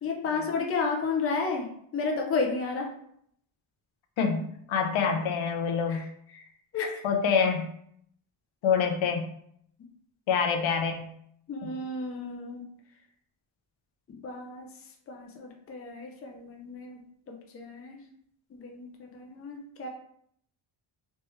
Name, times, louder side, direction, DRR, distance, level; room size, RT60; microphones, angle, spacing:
voice 1, 0.0-1.7 1.9-2.9 5.9-6.0 6.3-6.4 6.7-7.0 11.5-12.7 14.1-14.7 15.1-17.0 17.3-18.0 18.5-19.9, left 4 dB, 30° left, 1 dB, 0.5 m, -32 dB
voice 2, 4.2-6.0 7.0-7.7 8.6-9.3 10.3-11.1 11.6-11.7, left 6 dB, 70° left, 4 dB, 0.7 m, -26 dB
3.3 x 3.2 x 3.0 m, 0.68 s
wide cardioid pair, 175°, 48 cm